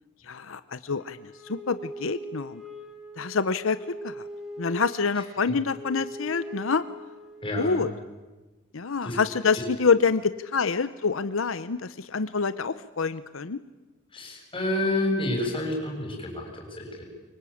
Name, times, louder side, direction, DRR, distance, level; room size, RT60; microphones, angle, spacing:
voice 1, 0.3-1.2 1.5-2.6 3.2-3.8 4.0-4.1 4.6-6.8 7.6-7.9 8.7-13.6, left 5 dB, 85° left, 13 dB, 0.8 m, -26 dB
Wind instrument woodwind instrument, 1.0-7.8, equal, ahead, 4.0 m, -41 dB
voice 2, 7.4-7.8 9.0-9.2 9.5-9.6 14.1-17.0, left 1 dB, 25° left, 1 dB, 7.3 m, -29 dB
24.5 x 23.5 x 8.6 m, 1.2 s
head